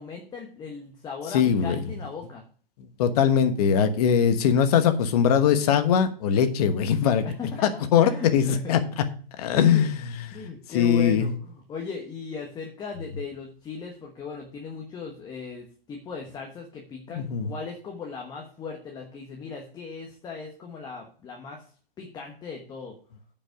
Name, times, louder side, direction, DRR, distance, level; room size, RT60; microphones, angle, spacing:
voice 1, 0.0-2.4 7.2-8.9 9.5-9.9 10.3-21.6 22.0-23.0, left 5 dB, 15° left, 1 dB, 1.2 m, -37 dB
voice 2, 1.3-1.8 3.0-7.2 7.6-9.0 9.4-10.0 10.7-11.3 17.1-17.5, left 8 dB, 40° left, 9 dB, 1.2 m, -21 dB
10.0 x 5.6 x 4.9 m, 0.43 s
hypercardioid pair, 135°, 29 cm